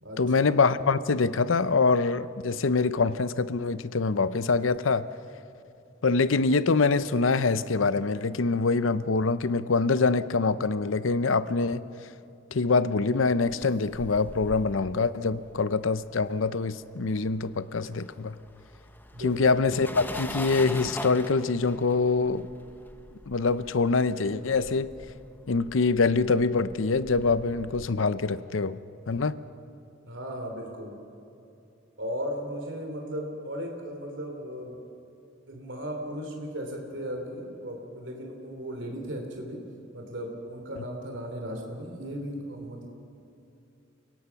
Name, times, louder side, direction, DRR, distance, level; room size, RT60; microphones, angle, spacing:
voice 1, 0.2-5.1 6.0-11.8 12.5-18.4 19.2-22.5 23.3-24.9 25.5-28.8 29.1-29.4, left 4 dB, 85° left, 15 dB, 0.7 m, -25 dB
sound 1, 13.2-16.9 17.2-27.9, left 1 dB, 10° left, 0.9 m, -42 dB
voice 2, 30.1-31.0 32.0-34.8 35.5-39.6 39.9-42.9, equal, 70° right, 2 dB, 3.0 m, -36 dB
29.0 x 17.5 x 5.9 m, 2.7 s
head